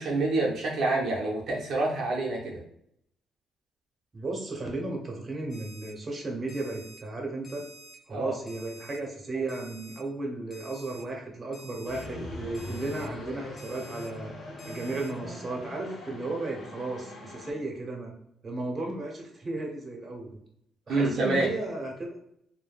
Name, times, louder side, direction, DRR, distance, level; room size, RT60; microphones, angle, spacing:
voice 1, 0.0-2.6 8.1-8.3 20.9-21.5, right 2 dB, 70° right, -2 dB, 0.6 m, -27 dB
voice 2, 4.1-7.6 8.1-14.3 14.7-18.1 18.4-20.3 20.9-22.1, right 2 dB, 30° right, 0 dB, 0.8 m, -34 dB
Alarm, 5.5-5.9 6.5-7.0 7.4-7.9 8.5-9.0 9.5-10.0 10.5-11.0 11.5-12.0 12.5-13.0 13.6-14.1 14.6-15.1, right 1 dB, 35° left, 0.8 m, -49 dB
sound 1, 11.8-17.5, left 2 dB, 70° left, 0.9 m, -41 dB
3.2 x 2.2 x 2.3 m, 0.72 s
cardioid pair, 90°, 0 cm